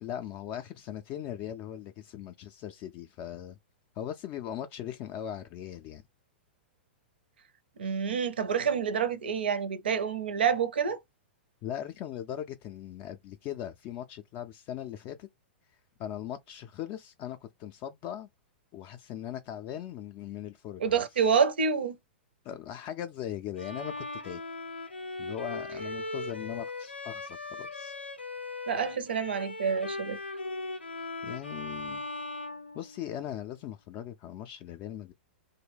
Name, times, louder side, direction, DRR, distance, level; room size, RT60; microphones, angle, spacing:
voice 1, 0.0-3.6 4.0-6.0 11.6-15.3 16.0-18.3 18.7-21.0 22.4-24.4 25.2-27.9 31.2-32.1 32.7-35.1, left 10 dB, 35° left, 0.3 m, -39 dB
voice 2, 7.8-11.0 20.8-22.0 28.7-30.2, right 6 dB, 70° right, 0.5 m, -28 dB
Bowed string instrument, 23.6-33.4, left 2 dB, 90° left, 0.5 m, -39 dB
2.8 x 2.1 x 3.3 m
figure-of-eight pair, 105°, 6 cm